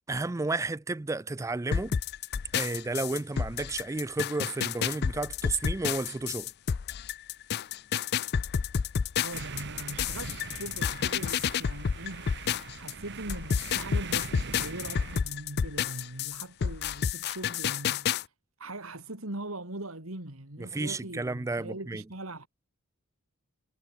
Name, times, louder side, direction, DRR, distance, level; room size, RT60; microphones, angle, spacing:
voice 1, 0.1-2.0 2.5-6.5 20.6-22.0, right 3 dB, 15° right, 0.4 m, -32 dB
sound 1, 1.7-12.9 13.3-18.2, left 7 dB, 50° left, 0.4 m, -30 dB
voice 2, 9.2-18.3 18.6-22.5, right 2 dB, 70° right, 3.6 m, -41 dB
sound 2, 9.3-15.2, right 4 dB, 55° right, 1.7 m, -42 dB
head